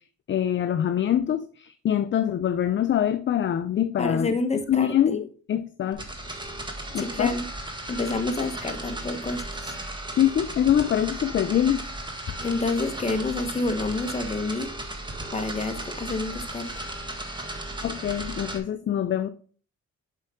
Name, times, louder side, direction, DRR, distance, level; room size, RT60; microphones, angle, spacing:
voice 1, 0.3-4.3 4.7-6.0 6.9-7.4 10.2-11.8 17.8-19.3, left 10 dB, 40° left, 0.5 m, -24 dB
voice 2, 4.0-5.2 6.9-7.5 7.9-9.7 12.4-14.7 15.3-16.8, left 3 dB, 20° left, 1.2 m, -28 dB
sound 1, 5.9-18.6, right 1 dB, 15° right, 1.6 m, -35 dB
7.4 x 5.4 x 3.8 m
cardioid pair, 90°, 30 cm